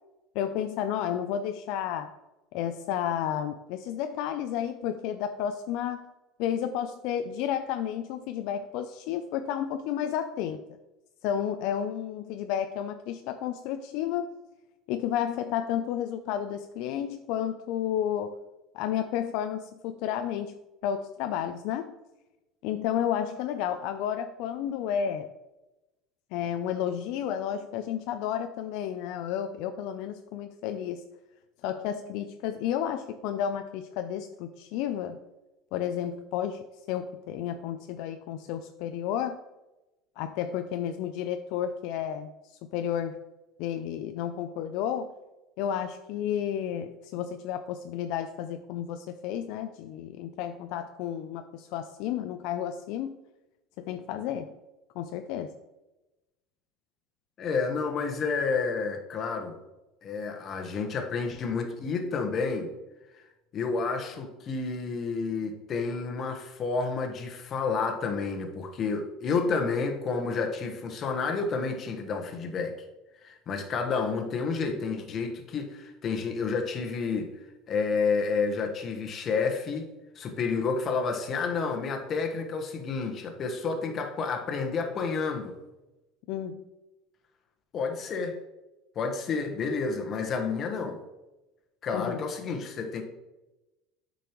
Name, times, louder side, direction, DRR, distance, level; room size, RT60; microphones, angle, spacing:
voice 1, 0.4-2.1 2.5-6.1 6.4-10.6 11.2-14.3 14.9-18.4 18.7-20.5 20.8-21.9 22.6-25.3 26.3-31.0 31.6-35.2 35.7-39.4 40.2-43.2 43.6-45.1 45.6-53.2 53.8-54.5 55.0-55.5 86.3-86.6 91.9-92.2, left 9 dB, 65° left, 8 dB, 0.4 m, -32 dB
voice 2, 57.4-59.6 60.0-62.7 63.5-72.7 73.2-77.3 77.7-85.5 87.7-88.4 88.9-91.0 91.8-93.0, left 4 dB, 35° left, 4 dB, 1.1 m, -30 dB
8.3 x 5.3 x 3.0 m, 1.0 s
cardioid pair, 135°, 0 cm